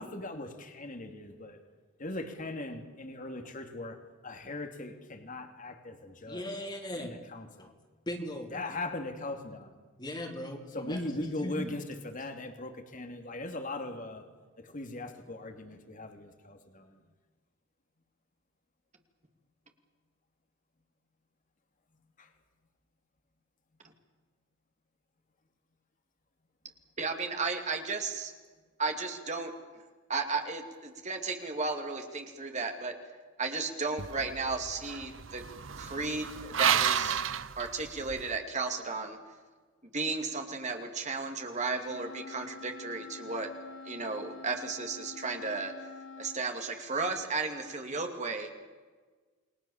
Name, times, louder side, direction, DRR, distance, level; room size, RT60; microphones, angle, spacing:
voice 1, 0.0-1.6 2.0-4.0 4.2-6.5 7.0-7.7 8.5-9.7 10.7-14.3 14.6-17.0 22.2-22.3, left 2 dB, 40° left, 6 dB, 2.6 m, -39 dB
voice 2, 6.3-7.1 7.6-7.7 8.1-8.5 10.0-11.7, equal, 20° left, 2 dB, 3.2 m, -38 dB
voice 3, 27.0-28.3 28.8-29.5 30.1-32.9 33.4-35.4 35.8-37.2 37.6-39.2 39.8-43.5 43.8-45.7 46.2-48.5, right 4 dB, 35° right, 4 dB, 2.6 m, -34 dB
sound 1, 34.0-38.3, right 8 dB, 70° right, 0.8 m, -32 dB
Wind instrument woodwind instrument, 41.9-46.4, left 4 dB, 70° left, 3.1 m, -47 dB
29.0 x 21.5 x 7.3 m, 1.4 s
head